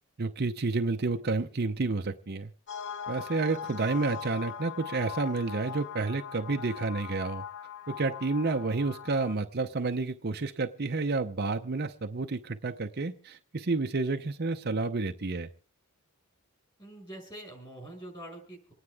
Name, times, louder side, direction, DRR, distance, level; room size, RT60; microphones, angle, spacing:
voice 1, 0.2-2.5 3.1-7.4 7.9-15.5, right 3 dB, 45° right, 6 dB, 0.7 m, -30 dB
sound 1, 2.7-9.3, left 8 dB, 55° left, 0.9 m, -41 dB
voice 2, 16.8-18.7, right 1 dB, 20° left, 3 dB, 5.3 m, -45 dB
27.5 x 9.8 x 3.5 m, 0.37 s
head